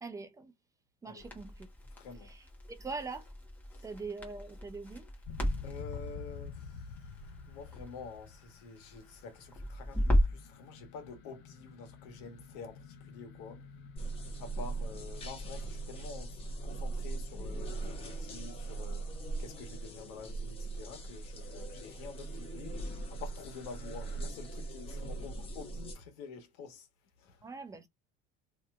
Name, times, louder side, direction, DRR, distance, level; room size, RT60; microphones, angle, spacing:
voice 1, 0.0-0.5 1.0-1.7 2.2-2.4 2.7-3.3 3.8-5.1 27.4-27.9, right 4 dB, 15° right, 0.5 m, -42 dB
Crackle, 1.2-10.5, equal, 10° left, 1.2 m, -35 dB
voice 2, 1.9-2.3 3.7-3.9 5.4-7.1 7.4-13.6 14.4-19.1 19.4-26.9 27.2-27.5, left 5 dB, 75° left, 1.3 m, -48 dB
sound 1, 5.3-22.3 22.7-24.3, left 4 dB, 60° left, 0.8 m, -50 dB
sound 2, 14.0-26.0, right 3 dB, 30° left, 1.0 m, -40 dB
3.1 x 2.9 x 2.4 m
supercardioid pair, 125°, 20 cm